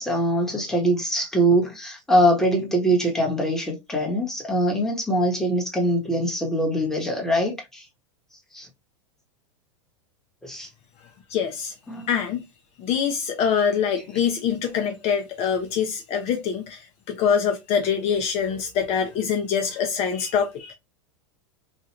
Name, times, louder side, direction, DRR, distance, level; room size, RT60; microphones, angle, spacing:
voice 1, 0.0-7.8 8.5-8.7 10.4-10.7 11.9-12.1, right 1 dB, 5° left, 1.2 m, -23 dB
voice 2, 11.3-11.7 12.1-12.4 12.8-20.7, left 7 dB, 40° left, 0.7 m, -24 dB
3.1 x 2.4 x 2.9 m
hypercardioid pair, 105°, 16 cm